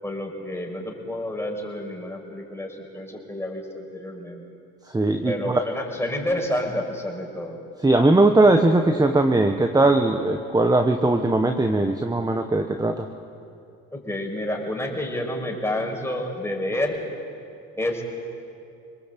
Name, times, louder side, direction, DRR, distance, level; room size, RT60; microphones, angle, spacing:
voice 1, 0.0-4.4 5.2-7.6 13.9-17.1 17.8-18.0, left 1 dB, 10° left, 0 dB, 5.7 m, -29 dB
voice 2, 4.8-5.6 7.8-13.1, right 2 dB, 10° right, 6 dB, 1.4 m, -19 dB
26.5 x 20.0 x 8.4 m, 2.6 s
supercardioid pair, 80°, 33 cm